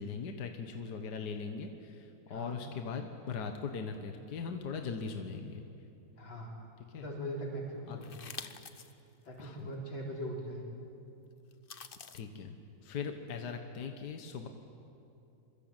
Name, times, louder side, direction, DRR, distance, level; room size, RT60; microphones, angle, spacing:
voice 1, 0.0-5.6 6.9-7.1 7.9-8.0 9.4-9.7 12.1-14.5, left 5 dB, 60° left, 5 dB, 1.9 m, -40 dB
voice 2, 2.3-2.6 6.2-6.5 6.9-8.4 9.2-10.6, equal, 90° left, -1 dB, 5.2 m, -41 dB
sound 1, 8.0-8.9 9.4-9.5 11.5-12.2, left 6 dB, 40° left, 0.9 m, -46 dB
26.5 x 24.0 x 9.1 m, 2.8 s
omnidirectional pair, 2.1 m